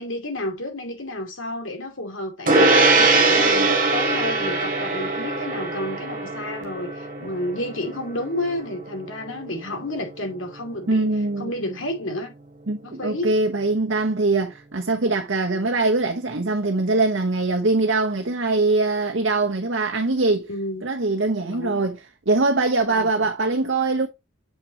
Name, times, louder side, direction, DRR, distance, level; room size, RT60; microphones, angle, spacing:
voice 1, 0.0-11.1 11.4-12.3 12.8-13.4 20.5-20.9 21.5-21.8 22.9-23.1, left 1 dB, 70° left, 2.5 m, -31 dB
Gong, 2.5-12.2, right 3 dB, 40° right, 2.1 m, -23 dB
voice 2, 10.9-11.5 12.7-20.5 20.8-24.1, right 3 dB, 60° right, 0.9 m, -22 dB
7.6 x 6.0 x 2.9 m
head